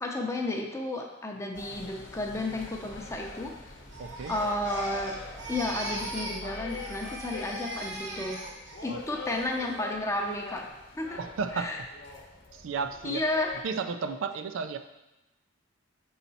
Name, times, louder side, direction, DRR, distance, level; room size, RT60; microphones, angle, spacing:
voice 1, 0.0-3.7 4.3-5.1 5.5-8.4 8.8-10.7 11.0-11.2 11.5-11.8 13.0-13.5, left 2 dB, 15° left, 1 dB, 0.6 m, -32 dB
sound 1, 1.5-13.6, left 3 dB, 60° left, 0.9 m, -44 dB
Crying sobbing, 3.9-6.4 6.7-8.9 9.3-9.7, right 1 dB, 60° right, 1.1 m, -39 dB
voice 2, 4.0-4.3 8.9-9.0 11.2-11.7 12.5-13.2 13.6-14.8, right 5 dB, 75° right, 8 dB, 0.4 m, -33 dB
5.7 x 4.0 x 4.1 m, 0.96 s
head